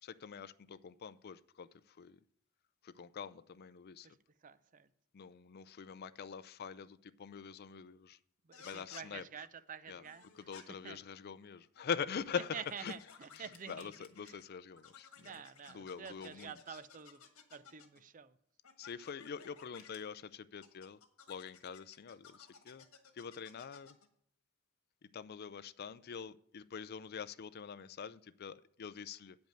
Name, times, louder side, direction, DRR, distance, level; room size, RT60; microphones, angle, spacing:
voice 1, 0.0-2.2 2.8-4.1 5.1-8.2 8.6-9.2 9.9-10.0 10.4-12.9 13.3-15.4 15.7-16.5 18.8-21.0 21.3-22.9 23.1-24.0 25.0-29.4, left 6 dB, 45° left, 0.4 m, -44 dB
voice 2, 4.0-4.9 8.4-10.5 10.8-11.0 12.5-13.9 14.2-14.4 15.2-17.2 17.5-18.4, right 7 dB, 40° right, 0.5 m, -49 dB
sound 1, 8.5-9.1 10.0-10.6 11.6-14.4 14.8-18.0 18.6-20.0 20.6-24.1, left 6 dB, 85° left, 1.5 m, -57 dB
8.9 x 5.2 x 7.8 m
head